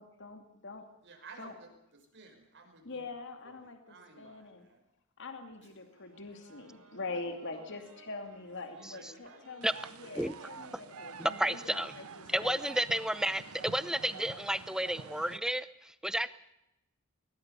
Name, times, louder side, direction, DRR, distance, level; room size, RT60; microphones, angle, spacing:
voice 1, 0.0-0.8 1.4-1.5 2.8-4.7 5.2-9.7 10.0-12.6, left 3 dB, 55° left, 6 dB, 2.5 m, -44 dB
voice 2, 1.0-3.1 3.4-4.8 5.6-6.1 7.5-7.9 8.7-9.5, right 3 dB, 55° right, 3 dB, 5.7 m, -55 dB
sound 1, 5.9-14.1, right 5 dB, 75° right, 4.1 m, -57 dB
sound 2, 9.6-15.4, right 5 dB, 90° right, 1.0 m, -48 dB
voice 3, 11.2-11.9 12.3-16.3, right 1 dB, 5° right, 14 dB, 0.8 m, -31 dB
20.5 x 20.5 x 6.9 m, 0.87 s
head